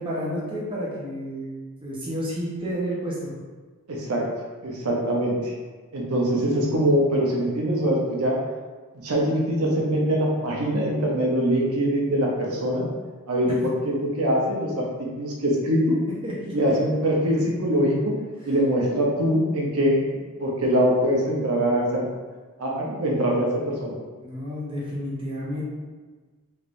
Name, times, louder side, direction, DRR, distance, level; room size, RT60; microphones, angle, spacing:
voice 1, 0.0-3.3 16.2-16.5 18.4-18.5 24.2-25.6, equal, 25° right, -7 dB, 0.7 m, -31 dB
voice 2, 3.9-4.2 4.6-5.5 5.9-8.4 9.0-12.8 13.3-14.9 15.2-16.0 16.5-18.1 18.5-22.0 22.6-24.0, equal, 85° right, -2 dB, 0.7 m, -23 dB
3.4 x 3.2 x 2.5 m, 1.4 s
head